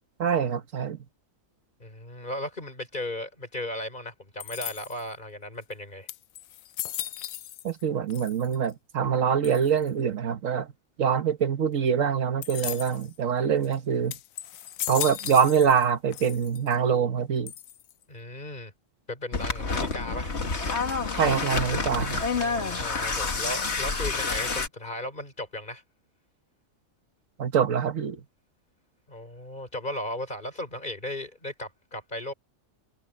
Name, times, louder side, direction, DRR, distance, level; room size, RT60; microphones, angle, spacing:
voice 1, 0.2-1.0 7.6-10.7 11.0-14.1 14.9-17.5 21.1-22.2 27.4-28.2, right 7 dB, 75° right, 1.5 m, -24 dB
voice 2, 1.8-6.1 18.1-18.7 19.1-20.3 22.4-25.8 29.1-32.3, left 1 dB, 35° left, 4.6 m, -36 dB
sound 1, 4.4-5.1 5.7-5.8 6.1-7.8 8.1-8.7 9.4-9.9 12.4-13.1 13.6-13.8 14.1-15.9 16.1-16.8 17.5-18.0, left 12 dB, 80° left, 1.0 m, -37 dB
sound 2, 19.3-24.7, left 4 dB, 55° left, 2.1 m, -28 dB
omnidirectional pair, 1.4 m